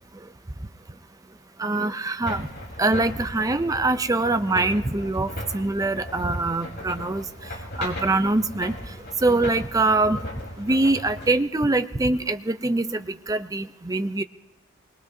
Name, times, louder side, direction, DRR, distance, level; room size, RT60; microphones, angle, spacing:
voice 1, 1.6-2.5 2.8-10.2 10.6-14.2, right 2 dB, 15° right, 10 dB, 0.5 m, -24 dB
sound 1, 2.2-11.3, left 1 dB, 50° left, 4.0 m, -37 dB
25.0 x 21.5 x 2.7 m, 1.0 s
head